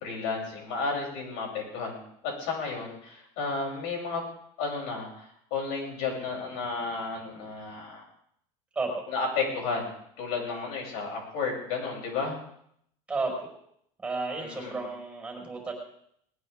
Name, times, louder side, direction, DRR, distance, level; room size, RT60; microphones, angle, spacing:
voice 1, 0.0-4.2 4.6-8.0 9.1-9.9 10.2-12.4 14.4-14.8, left 4 dB, 70° left, 0 dB, 7.4 m, -32 dB
voice 2, 14.0-15.7, right 3 dB, 10° right, 1 dB, 5.0 m, -32 dB
20.0 x 19.5 x 3.6 m, 0.69 s
cardioid pair, 155°, 13 cm